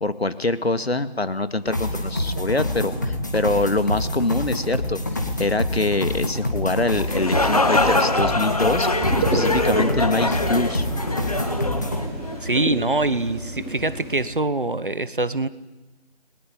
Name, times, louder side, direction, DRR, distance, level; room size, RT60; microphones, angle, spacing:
voice 1, 0.0-10.9, left 2 dB, 65° left, 12 dB, 2.1 m, -25 dB
sound 1, 1.7-12.0, left 1 dB, 15° left, 2.1 m, -27 dB
sound 2, 6.9-12.6, left 2 dB, 35° left, 2.1 m, -24 dB
sound 3, 9.0-14.2, right 1 dB, 5° right, 4.8 m, -29 dB
voice 2, 12.4-15.5, right 2 dB, 50° right, 15 dB, 1.4 m, -24 dB
29.0 x 21.5 x 8.8 m, 1.1 s
figure-of-eight pair, 175°, 33 cm